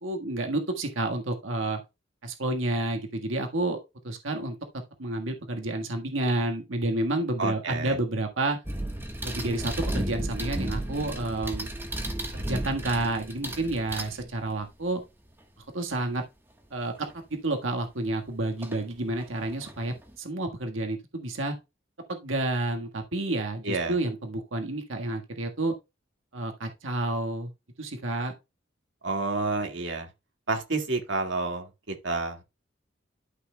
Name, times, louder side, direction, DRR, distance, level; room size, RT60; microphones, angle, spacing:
voice 1, 0.0-1.8 2.2-3.8 4.0-4.6 5.0-8.6 9.2-11.7 12.3-15.0 15.7-16.2 16.7-21.5 22.1-25.7 26.3-27.5 27.8-28.3, right 2 dB, 85° right, 1.6 m, -30 dB
voice 2, 7.4-7.9 23.6-23.9 29.0-30.1 30.5-32.4, right 3 dB, 70° right, 2.0 m, -29 dB
sound 1, 8.6-14.6 17.1-17.2 18.6-18.8 19.2-20.1, right 1 dB, 10° right, 1.3 m, -33 dB
12.5 x 5.8 x 2.2 m
head